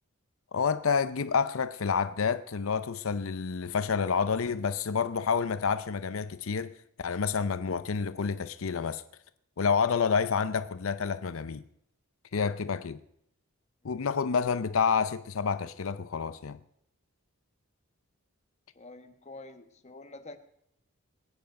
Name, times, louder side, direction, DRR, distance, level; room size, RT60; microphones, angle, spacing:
voice 1, 0.5-6.7 7.0-9.0 9.6-11.6 12.3-13.0 13.8-16.6, left 5 dB, 85° left, 0.6 m, -29 dB
voice 2, 18.7-20.4, left 2 dB, 35° left, 1.2 m, -47 dB
21.5 x 9.3 x 5.1 m
head